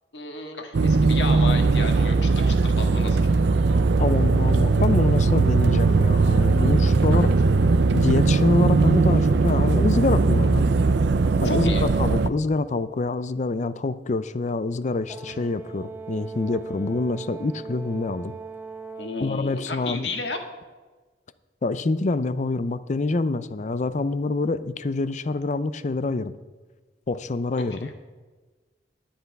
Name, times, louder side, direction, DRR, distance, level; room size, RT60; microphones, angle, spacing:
voice 1, 0.1-3.3 7.1-7.3 11.4-11.8 15.3-15.4 19.0-20.4 27.6-27.9, left 3 dB, 80° left, 4 dB, 1.7 m, -33 dB
sound 1, 0.7-12.3, right 3 dB, 70° right, 0.5 m, -19 dB
voice 2, 4.0-7.3 7.9-10.7 11.4-18.3 19.2-20.1 21.6-26.4 27.1-27.9, left 3 dB, 40° left, 14 dB, 0.5 m, -26 dB
Brass instrument, 15.1-19.3, right 5 dB, 10° right, 0.7 m, -39 dB
10.5 x 10.5 x 5.3 m, 1.3 s
head